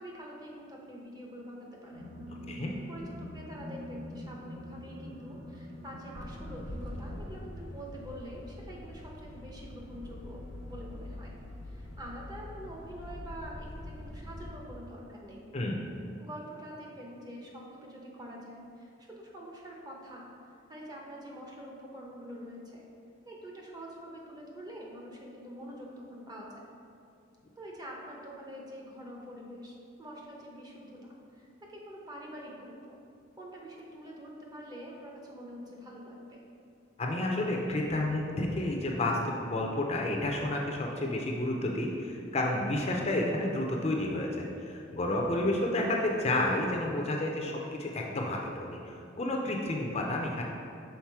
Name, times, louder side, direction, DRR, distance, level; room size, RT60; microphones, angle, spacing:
voice 1, 0.0-2.1 2.9-11.3 11.7-15.5 16.2-22.9 23.2-26.7 27.6-33.0 33.4-36.4, equal, 20° right, -2 dB, 0.8 m, -45 dB
sound 1, 1.9-7.2, equal, 55° right, 1.2 m, -44 dB
sound 2, 6.1-14.7, left 1 dB, 80° left, 0.8 m, -44 dB
voice 2, 37.0-50.4, left 1 dB, 30° left, 0 dB, 0.5 m, -30 dB
5.8 x 3.9 x 4.6 m, 2.5 s
head